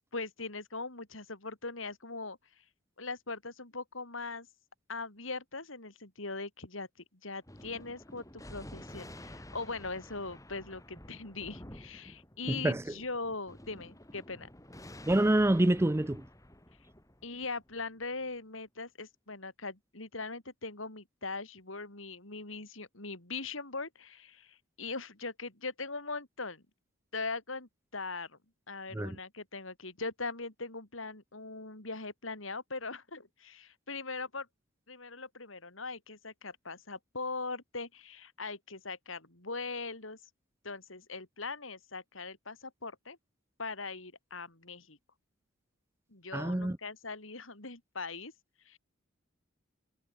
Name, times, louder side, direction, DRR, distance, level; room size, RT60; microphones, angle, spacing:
voice 1, 0.1-2.4 3.0-4.5 4.9-6.9 7.2-14.5 17.2-26.6 27.1-28.4 28.7-34.5 34.9-40.2 40.6-43.2 43.6-45.0 46.1-48.3 48.6-48.8, left 3 dB, 80° left, 4.7 m, -40 dB
Thunder, 7.4-18.3, left 1 dB, 15° left, 4.5 m, -50 dB
voice 2, 12.5-12.9 15.1-16.2 28.9-29.2 46.3-46.8, right 1 dB, 15° right, 0.5 m, -27 dB
head